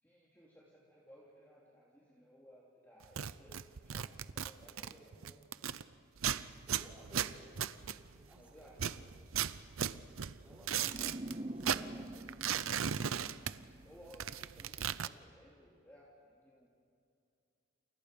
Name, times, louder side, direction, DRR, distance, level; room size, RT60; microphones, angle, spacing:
voice 1, 0.0-5.1 8.4-9.3 11.7-12.3 13.8-16.7, equal, 10° left, -5 dB, 3.0 m, -60 dB
sound 1, 3.0-5.8 6.2-8.4 8.7-11.3 11.6-13.9 14.1-15.1, right 8 dB, 85° right, 0.7 m, -37 dB
voice 2, 4.6-5.5 6.6-9.0 10.4-11.9, equal, 5° right, -4 dB, 5.6 m, -59 dB
sound 2, 10.7-13.9, right 1 dB, 30° right, 0.8 m, -45 dB
29.5 x 29.0 x 5.3 m, 2.5 s
head